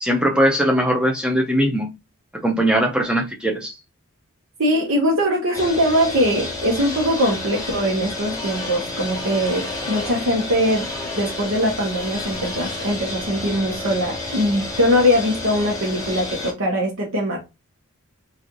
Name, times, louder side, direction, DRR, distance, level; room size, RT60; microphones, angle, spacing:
voice 1, 0.0-1.9 2.3-3.7, equal, 5° right, 0.5 m, -20 dB
voice 2, 4.6-17.4, equal, 70° right, 1.0 m, -21 dB
sound 1, 5.5-16.5, left 2 dB, 15° left, 0.9 m, -30 dB
3.1 x 2.4 x 3.8 m
head